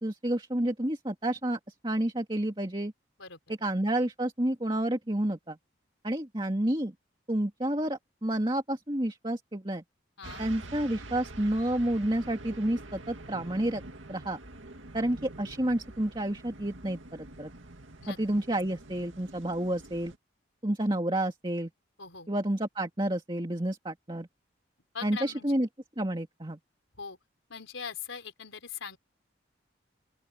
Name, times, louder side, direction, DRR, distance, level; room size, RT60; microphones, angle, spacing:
voice 1, 0.0-2.9 3.5-5.6 6.0-6.9 7.3-9.8 10.4-13.8 14.1-14.4 14.9-17.5 18.1-20.1 20.6-21.7 22.3-24.3 25.0-25.7 26.0-26.6, right 1 dB, 25° right, 2.1 m, -30 dB
sound 1, 10.2-20.2, right 2 dB, 80° right, 2.2 m, -46 dB
voice 2, 24.9-25.5 27.0-27.2 27.5-29.0, left 6 dB, 85° left, 4.2 m, -41 dB
open air
head